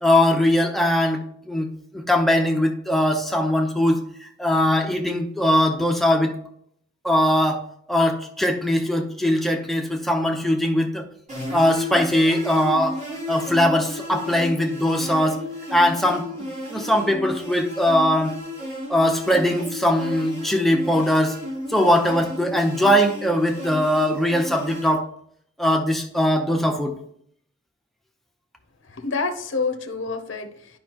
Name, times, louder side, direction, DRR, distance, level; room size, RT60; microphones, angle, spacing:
voice 1, 0.0-1.7 1.9-6.3 7.0-7.6 7.9-11.0 11.5-13.0 13.3-15.4 15.7-18.4 18.9-21.4 21.7-25.0 25.6-26.9, left 1 dB, ahead, 3 dB, 0.8 m, -21 dB
sound 1, 11.3-24.9, left 1 dB, 35° right, 3.3 m, -33 dB
voice 2, 28.8-30.8, left 4 dB, 65° left, 6 dB, 0.7 m, -28 dB
10.5 x 5.3 x 2.9 m, 0.66 s
head